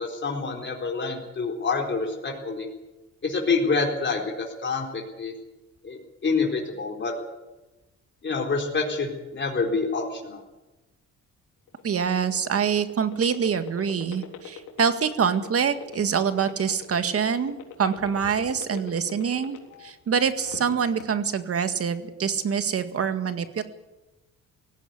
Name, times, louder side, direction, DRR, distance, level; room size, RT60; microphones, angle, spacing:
voice 1, 0.0-2.7 3.2-5.3 5.8-7.1 8.2-10.4, left 4 dB, 40° left, 0 dB, 4.3 m, -27 dB
sound 1, 11.7-19.9 20.3-21.0, left 10 dB, 80° left, 3.6 m, -41 dB
voice 2, 11.8-23.6, right 7 dB, 50° right, 9 dB, 1.9 m, -25 dB
18.0 x 15.5 x 9.8 m, 1.1 s
cardioid pair, 90°, 30 cm